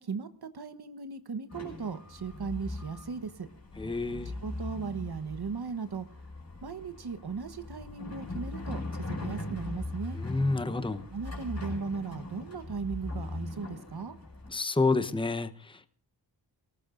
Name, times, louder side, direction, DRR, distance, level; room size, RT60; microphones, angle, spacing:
voice 1, 0.0-3.5 4.2-6.0 6.6-10.2 11.1-14.1, right 5 dB, 60° right, 1.2 m, -37 dB
sound 1, 1.5-14.5, left 2 dB, 35° left, 5.6 m, -40 dB
voice 2, 3.8-4.4 10.1-11.0 14.5-15.9, left 3 dB, 10° left, 0.9 m, -29 dB
28.5 x 18.5 x 2.6 m
wide cardioid pair, 140°, 44 cm